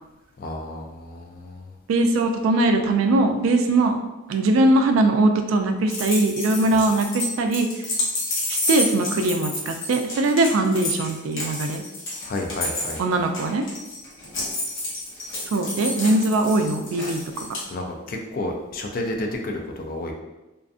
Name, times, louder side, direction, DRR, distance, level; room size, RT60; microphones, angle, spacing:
voice 1, 0.4-1.7 12.2-13.0 17.7-20.1, left 1 dB, 45° left, 2 dB, 0.3 m, -31 dB
voice 2, 1.9-4.0 4.3-7.7 8.5-11.8 13.0-13.6 15.5-17.5, right 2 dB, 75° right, 5 dB, 0.3 m, -21 dB
sound 1, 5.9-17.6, left 1 dB, 65° left, 0.8 m, -30 dB
2.5 x 2.4 x 2.4 m, 1.0 s
head